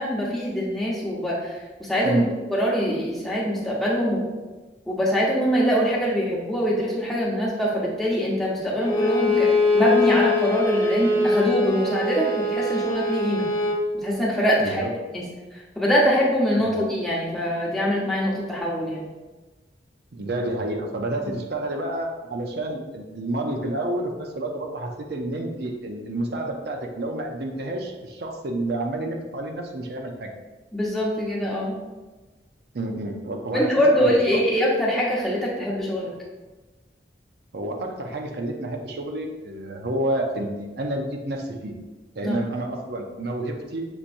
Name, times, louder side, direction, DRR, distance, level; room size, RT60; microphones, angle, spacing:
voice 1, 0.0-2.2 2.5-4.2 4.9-13.5 13.9-14.8 15.1-15.2 15.5-19.1 30.7-31.8 33.5-36.1 42.2-42.4, equal, ahead, -6 dB, 0.9 m, -23 dB
Bowed string instrument, 8.8-13.8, left 2 dB, 30° left, 1.0 m, -22 dB
voice 2, 14.6-15.0 16.7-16.8 20.1-30.3 32.7-33.7 34.0-34.4 37.5-41.8 42.2-43.8, right 1 dB, 60° right, 2 dB, 0.6 m, -29 dB
6.8 x 2.9 x 2.6 m, 1.2 s
head